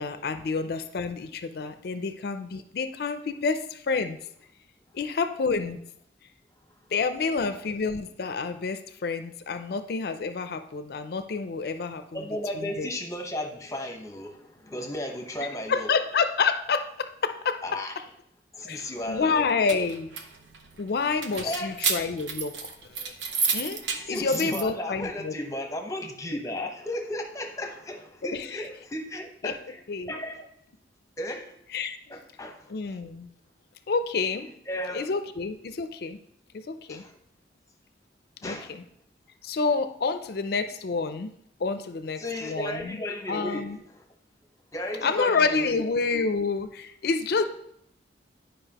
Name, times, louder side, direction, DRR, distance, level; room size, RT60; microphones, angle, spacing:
voice 1, 0.0-4.2 4.9-5.8 6.9-12.2 12.6-12.9 15.7-17.6 18.6-20.1 20.8-23.1 23.5-23.8 24.1-25.3 28.3-28.5 29.4-29.5 29.9-30.1 31.7-32.2 32.7-33.3 33.9-34.5 34.9-36.2 36.5-37.0 38.4-38.8 39.4-41.3 41.6-43.0 43.3-43.8 45.0-47.4, left 4 dB, 55° left, 9 dB, 0.4 m, -28 dB
voice 2, 12.1-15.9 17.6-17.9 18.5-19.5 21.4-21.7 23.9-29.8 30.1-30.5 31.2-31.5 32.1-32.9 34.7-35.1 36.9-37.1 38.4-38.7 42.2-44.0 44.7-45.8 47.4-47.5, left 1 dB, 20° left, 3 dB, 0.8 m, -34 dB
sound 1, 19.4-24.6, right 5 dB, 90° right, 0.8 m, -31 dB
9.9 x 5.2 x 2.9 m, 0.71 s
head